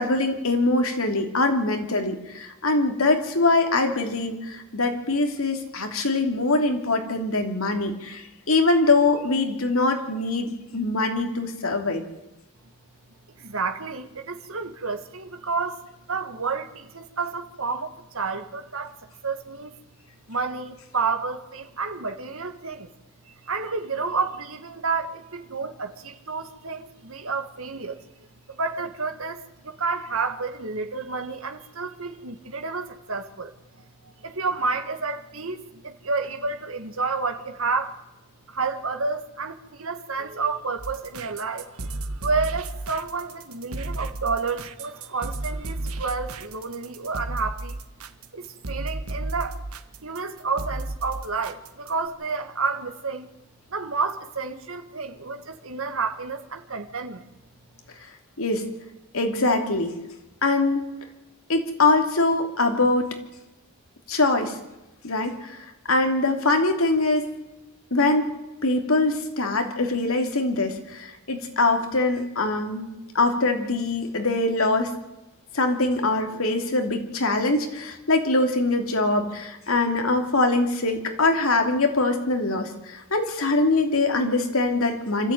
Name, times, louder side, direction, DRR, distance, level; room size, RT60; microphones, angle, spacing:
voice 1, 0.0-12.0 58.4-58.6 59.1-59.9 60.4-60.8 61.5-63.1 64.1-64.6 65.0-67.3 67.9-68.3 68.6-72.9 73.1-74.9 75.5-85.3, left 2 dB, 70° left, 3.0 m, -23 dB
voice 2, 13.4-19.8 20.3-22.9 23.5-28.0 28.5-33.5 34.2-38.0 38.5-47.7 48.3-49.6 50.0-53.3 53.7-57.3, right 4 dB, 70° right, 1.8 m, -30 dB
sound 1, 40.8-52.1, right 2 dB, 90° right, 1.4 m, -33 dB
25.5 x 14.0 x 9.2 m
head